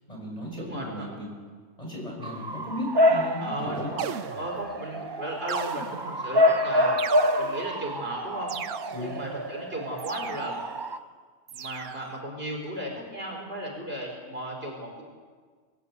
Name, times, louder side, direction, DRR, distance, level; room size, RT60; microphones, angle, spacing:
voice 1, 0.1-1.3 1.8-3.9 8.9-9.2, left 1 dB, 30° left, -1 dB, 6.3 m, -36 dB
voice 2, 0.6-1.1 3.4-7.0 7.4-8.5 9.0-10.6 11.5-15.0, right 1 dB, 45° right, 0 dB, 4.7 m, -35 dB
Bark / Motor vehicle (road) / Siren, 2.2-11.0, left 1 dB, 25° right, 0.7 m, -27 dB
sound 1, 4.0-4.8 5.5-6.3 7.0-7.7 8.5-9.2 10.0-10.7 11.5-12.2, right 8 dB, 70° right, 1.1 m, -37 dB
22.0 x 17.5 x 8.2 m, 1.5 s
omnidirectional pair, 1.4 m